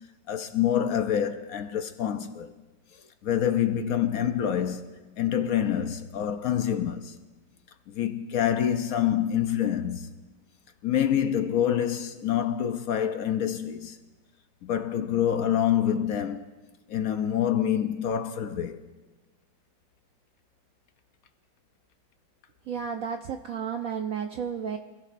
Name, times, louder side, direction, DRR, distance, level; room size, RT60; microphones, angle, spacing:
voice 1, 0.3-2.5 2.9-7.2 7.9-10.1 10.8-14.0 14.6-16.5 16.9-18.8, left 10 dB, 65° left, 0.9 m, -26 dB
voice 2, 22.7-24.8, right 7 dB, 70° right, 0.8 m, -32 dB
26.0 x 15.5 x 2.6 m
omnidirectional pair, 2.1 m